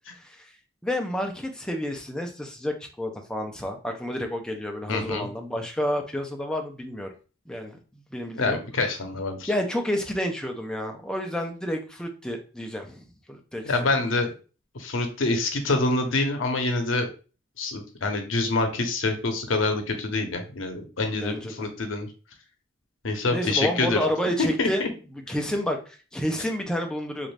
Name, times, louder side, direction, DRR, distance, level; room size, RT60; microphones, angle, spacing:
voice 1, 0.8-7.1 7.5-8.6 9.5-13.9 21.1-21.7 23.3-24.8 25.3-27.3, equal, 5° left, 3 dB, 0.5 m, -30 dB
voice 2, 4.9-5.3 8.4-9.5 13.6-14.3 14.8-17.1 17.6-22.1 23.0-24.0 24.4-24.9, left 3 dB, 80° left, 5 dB, 0.7 m, -26 dB
3.1 x 2.5 x 3.2 m, 0.35 s
head